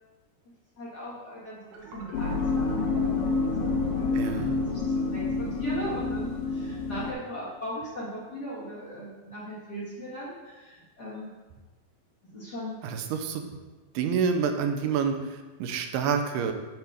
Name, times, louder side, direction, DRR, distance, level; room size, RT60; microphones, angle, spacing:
voice 1, 0.8-11.3 12.3-12.8, equal, 40° left, -8 dB, 1.5 m, -39 dB
sound 1, 1.7-7.6, right 3 dB, 65° right, 2.8 m, -45 dB
sound 2, 2.1-7.1, left 4 dB, 70° left, 2.4 m, -28 dB
voice 2, 4.1-4.6 12.8-13.4 13.9-16.5, right 6 dB, 90° right, 6 dB, 2.8 m, -28 dB
7.5 x 4.7 x 6.6 m, 1.2 s
omnidirectional pair, 4.5 m